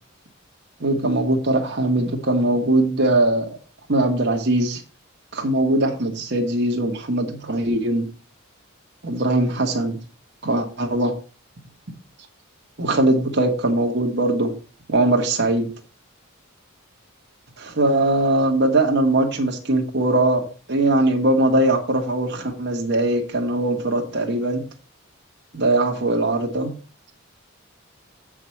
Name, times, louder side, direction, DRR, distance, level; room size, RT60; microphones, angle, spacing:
voice 1, 0.8-3.5 3.9-4.8 5.3-8.1 9.0-10.0 10.4-11.1 12.8-14.5 14.9-15.7 17.6-24.6 25.5-26.7, right 1 dB, 55° right, 1 dB, 1.5 m, -21 dB
8.5 x 4.9 x 5.8 m, 0.36 s
head